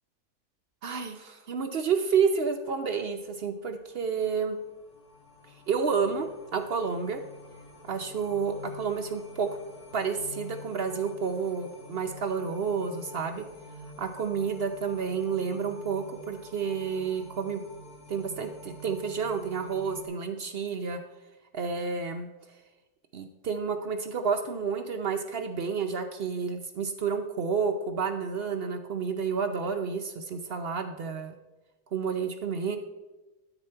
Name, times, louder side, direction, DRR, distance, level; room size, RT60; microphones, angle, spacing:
voice 1, 0.8-4.6 5.7-7.2 7.9-9.5 9.9-13.4 14.0-17.6 18.1-21.0 21.5-22.3 23.1-31.3 31.9-32.8, right 5 dB, 60° right, 6 dB, 0.6 m, -30 dB
sound 1, 3.8-20.0, left 1 dB, 70° left, 1.8 m, -48 dB
9.9 x 8.2 x 4.4 m, 1.1 s
omnidirectional pair, 1.7 m